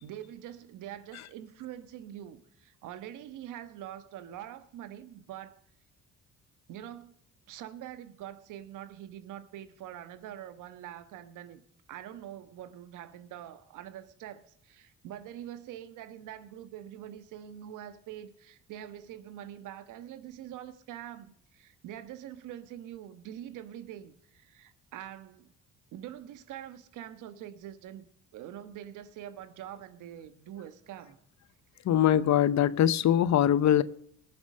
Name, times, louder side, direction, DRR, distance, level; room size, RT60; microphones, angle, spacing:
voice 1, 0.0-5.6 6.7-7.1 7.5-11.6 11.9-25.5 25.9-31.2, right 11 dB, 90° right, 1.3 m, -44 dB
voice 2, 31.8-33.8, left 10 dB, 65° left, 0.8 m, -22 dB
20.0 x 7.3 x 6.4 m
cardioid pair, 90°, 30 cm